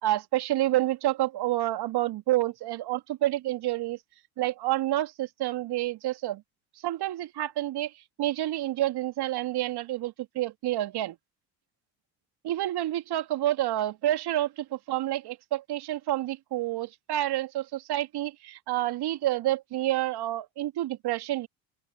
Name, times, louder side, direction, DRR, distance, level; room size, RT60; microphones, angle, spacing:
voice 1, 0.0-4.0 4.4-6.4 6.7-11.2 12.4-21.5, right 14 dB, 55° right, 2.9 m, -29 dB
open air
hypercardioid pair, 65°, 47 cm